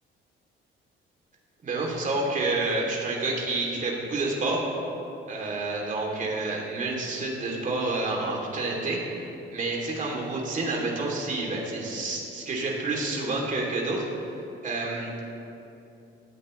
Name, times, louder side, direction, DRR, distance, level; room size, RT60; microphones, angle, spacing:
voice 1, 1.6-4.6 5.3-9.2 9.5-14.1 14.6-15.2, right 2 dB, 40° right, -2 dB, 3.3 m, -29 dB
19.5 x 14.0 x 3.4 m, 2.8 s
cardioid pair, 125°, 21 cm